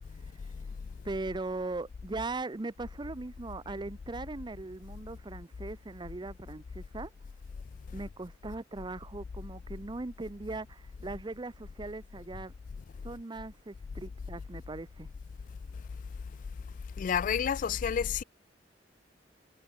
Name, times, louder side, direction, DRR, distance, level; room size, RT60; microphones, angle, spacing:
voice 1, 1.0-7.1 7.9-12.5 13.0-15.1, right 2 dB, 25° right, 0.6 m, -39 dB
voice 2, 17.0-18.2, left 7 dB, 45° left, 0.3 m, -29 dB
head